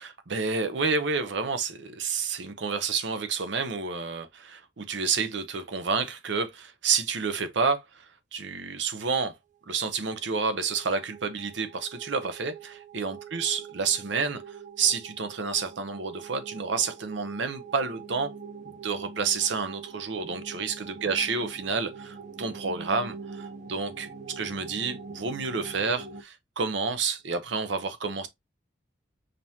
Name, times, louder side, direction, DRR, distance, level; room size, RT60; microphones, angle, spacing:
voice 1, 0.0-9.4 9.7-18.3 18.6-28.3, right 5 dB, 75° right, 0.7 m, -29 dB
sound 1, 9.8-26.2, right 5 dB, 40° right, 0.5 m, -44 dB
5.3 x 2.9 x 2.7 m
head